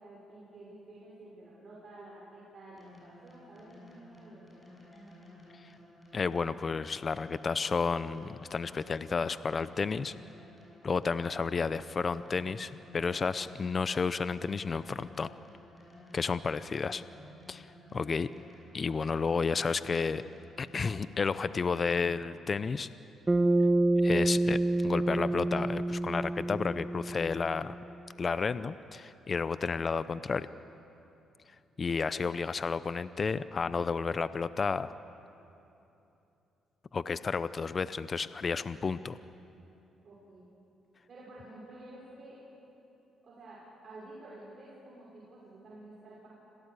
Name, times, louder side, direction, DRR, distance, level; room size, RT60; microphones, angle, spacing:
voice 1, 0.0-4.6 16.6-16.7 40.0-40.5 41.1-42.4 43.2-46.3, right 2 dB, 50° right, -6 dB, 5.9 m, -51 dB
sound 1, 2.8-22.4, left 1 dB, 20° left, 7.2 m, -54 dB
voice 2, 6.1-10.1 10.8-15.3 16.1-17.0 17.5-17.7 17.9-18.3 18.7-20.2 20.6-22.9 24.0-27.7 28.2-30.5 31.8-34.9 36.9-39.2, left 5 dB, 40° left, 14 dB, 0.6 m, -31 dB
Bass guitar, 23.3-27.7, right 2 dB, 20° right, 1.4 m, -28 dB
26.5 x 17.0 x 8.3 m, 2.9 s
cardioid pair, 90°, 0 cm